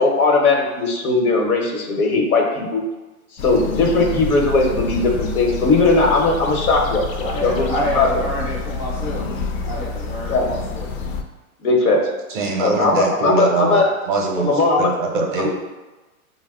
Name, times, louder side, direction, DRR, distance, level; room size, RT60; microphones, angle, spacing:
voice 1, 0.0-2.8 3.4-8.1 10.3-10.5 11.6-12.1 12.6-13.9 14.4-14.9 15.4-15.5, left 3 dB, 85° left, 1 dB, 1.0 m, -18 dB
sound 1, 3.4-11.2, left 4 dB, 65° left, 0.5 m, -28 dB
voice 2, 7.2-11.1, equal, 15° left, -5 dB, 0.4 m, -28 dB
voice 3, 12.3-14.5 14.8-15.5, right 4 dB, 35° right, 0 dB, 0.5 m, -23 dB
4.1 x 2.1 x 3.6 m, 1.1 s
hypercardioid pair, 145°, 43 cm